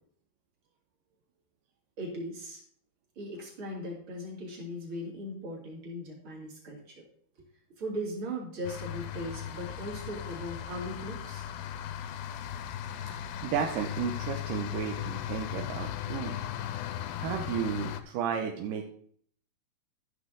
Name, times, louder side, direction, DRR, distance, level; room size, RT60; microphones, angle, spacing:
voice 1, 2.0-2.6 3.2-7.0 7.8-11.5, equal, 35° right, -3 dB, 3.0 m, -38 dB
sound 1, 8.6-18.0, left 11 dB, 80° left, 2.2 m, -37 dB
voice 2, 13.0-16.4 17.2-18.9, right 8 dB, 80° right, 3 dB, 2.0 m, -33 dB
13.0 x 6.5 x 3.8 m, 0.62 s
omnidirectional pair, 4.8 m